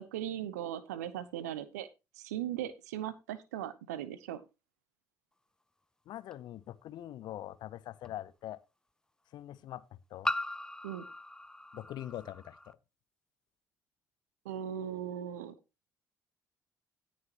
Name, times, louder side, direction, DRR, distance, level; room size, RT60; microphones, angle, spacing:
voice 1, 0.0-1.9 2.1-4.4 10.8-11.0 14.4-15.5, right 10 dB, 75° right, 0.9 m, -38 dB
voice 2, 6.1-8.6 9.3-9.8 10.1-10.3 11.7-12.8, left 12 dB, 60° left, 0.6 m, -43 dB
sound 1, 6.3-6.4 8.0-8.1 10.2-12.7, left 1 dB, 10° left, 0.6 m, -38 dB
18.0 x 6.3 x 2.9 m
figure-of-eight pair, 45°, 9 cm